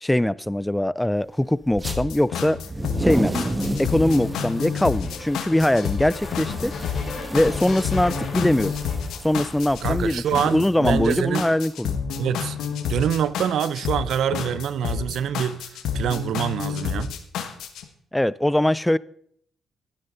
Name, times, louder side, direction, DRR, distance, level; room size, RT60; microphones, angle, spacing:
voice 1, 0.0-2.6 3.0-6.7 7.3-8.8 9.2-10.2 10.5-12.0 18.1-19.0, left 1 dB, 5° left, 0.3 m, -22 dB
sound 1, 1.7-9.6 10.4-11.3, left 4 dB, 60° left, 3.1 m, -36 dB
sound 2, 1.7-2.0 2.6-11.1, right 1 dB, 15° right, 1.6 m, -32 dB
sound 3, 1.8-17.8, left 7 dB, 85° left, 1.3 m, -29 dB
voice 2, 9.8-11.4 12.2-12.6 12.9-15.6 15.9-17.1, right 9 dB, 75° right, 0.6 m, -25 dB
12.0 x 11.0 x 3.9 m
cardioid pair, 80°, 0 cm